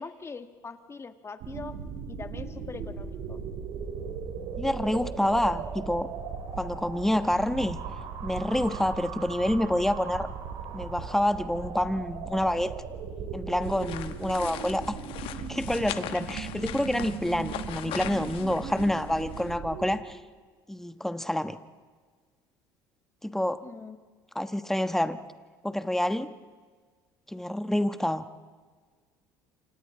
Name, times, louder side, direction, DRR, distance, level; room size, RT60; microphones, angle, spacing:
voice 1, 0.0-1.8 2.1-3.4 14.5-14.6 23.6-24.0, left 4 dB, 25° left, 9 dB, 1.6 m, -42 dB
sound 1, 1.4-20.0, right 6 dB, 65° right, 3.0 m, -38 dB
voice 2, 4.6-6.1 6.5-7.8 8.2-10.3 10.7-12.7 13.3-14.9 15.5-20.2 20.7-21.6 23.2-23.6 24.3-25.2 25.6-26.3 27.3-28.3, left 1 dB, 5° left, 10 dB, 1.2 m, -28 dB
sound 2, 13.6-19.5, left 12 dB, 60° left, 1.2 m, -40 dB
28.0 x 26.5 x 3.9 m, 1.5 s
hypercardioid pair, 70°, 10 cm